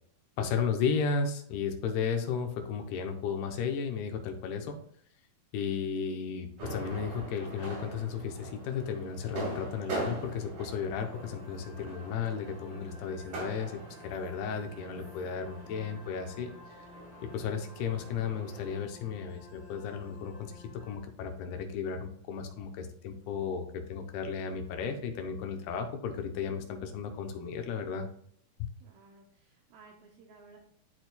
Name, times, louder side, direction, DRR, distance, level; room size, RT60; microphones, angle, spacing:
voice 1, 0.4-4.8 5.5-16.9 17.3-28.1 28.6-28.7, left 6 dB, 85° left, 5 dB, 2.8 m, -34 dB
sound 1, 6.6-18.8, right 3 dB, 60° right, 4.4 m, -43 dB
sound 2, 11.0-21.0, left 3 dB, 5° right, 0.7 m, -53 dB
voice 2, 28.8-30.6, right 4 dB, 80° right, 0 dB, 2.4 m, -56 dB
12.0 x 4.5 x 2.3 m, 0.64 s
omnidirectional pair, 4.4 m